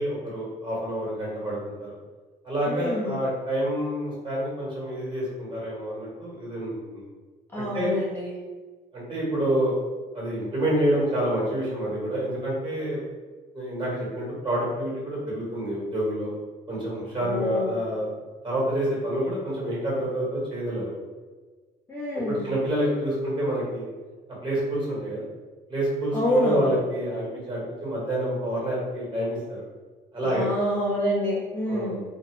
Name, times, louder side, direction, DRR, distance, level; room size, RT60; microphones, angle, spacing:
voice 1, 0.0-1.9 2.4-7.1 7.6-7.9 8.9-9.7 10.1-13.0 13.5-16.3 16.7-18.1 18.4-20.9 22.3-23.9 24.4-25.2 25.7-29.6 30.1-30.5 31.7-32.0, right 1 dB, 30° right, -6 dB, 1.3 m, -28 dB
voice 2, 2.7-3.2 7.5-8.3 17.2-17.8 21.9-22.4 26.1-26.8 30.2-32.0, left 1 dB, 10° left, -7 dB, 0.5 m, -27 dB
2.3 x 2.0 x 3.2 m, 1.4 s
cardioid pair, 110°, 17 cm